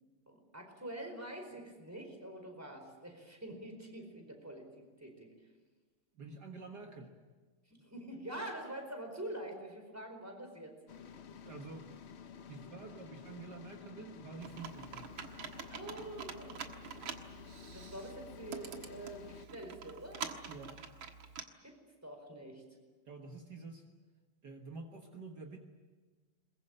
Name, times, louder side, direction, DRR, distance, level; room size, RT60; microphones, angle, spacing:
voice 1, 0.3-4.7 5.0-5.3 7.7-10.7 12.7-12.8 15.7-16.6 17.6-20.2 21.6-22.6, right 1 dB, 5° right, 4 dB, 4.5 m, -46 dB
voice 2, 6.1-7.1 11.3-11.9 12.5-15.2 20.5-21.0 23.1-23.8 24.4-25.6, right 3 dB, 55° right, 3 dB, 2.1 m, -48 dB
sound 1, 10.9-19.5, left 7 dB, 55° left, 0.7 m, -52 dB
Computer keyboard, 14.4-21.4, right 6 dB, 75° right, 2.3 m, -46 dB
22.0 x 21.5 x 8.9 m, 1.4 s
omnidirectional pair, 2.2 m